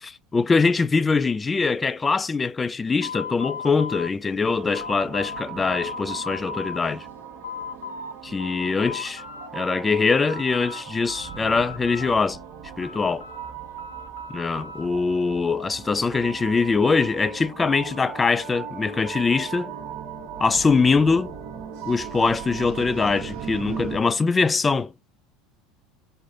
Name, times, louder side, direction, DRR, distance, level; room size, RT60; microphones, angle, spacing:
voice 1, 0.0-7.1 8.2-9.2 9.5-12.4 12.8-13.3 14.3-19.7 20.4-21.3 21.9-24.9, left 4 dB, 20° left, 0.3 m, -23 dB
sound 1, 3.0-5.5 5.7-6.8 7.2-8.1 8.4-9.5 9.8-10.8 11.1-12.4 12.8-14.9, left 6 dB, 80° left, 0.5 m, -37 dB
sound 2, 4.4-24.0, right 8 dB, 60° right, 1.0 m, -38 dB
3.1 x 2.1 x 3.8 m
figure-of-eight pair, 75°, 0 cm